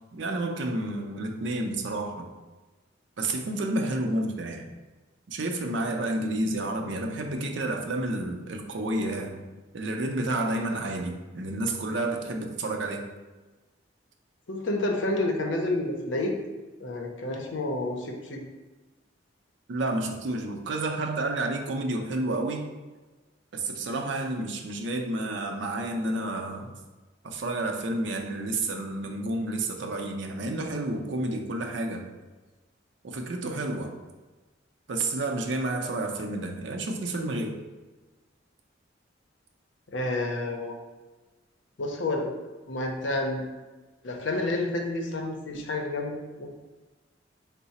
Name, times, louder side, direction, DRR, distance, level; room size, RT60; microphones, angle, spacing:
voice 1, 0.1-2.3 3.2-4.7 5.3-9.4 9.7-13.1 19.7-22.7 23.5-26.7 27.2-32.1 33.0-33.9 34.9-37.6, right 2 dB, 65° right, 3 dB, 0.5 m, -30 dB
voice 2, 14.5-16.4 16.8-18.4 39.9-40.7 41.8-42.3 42.7-43.4 44.0-46.5, left 2 dB, 70° left, 2 dB, 0.6 m, -29 dB
4.6 x 2.0 x 4.1 m, 1.2 s
head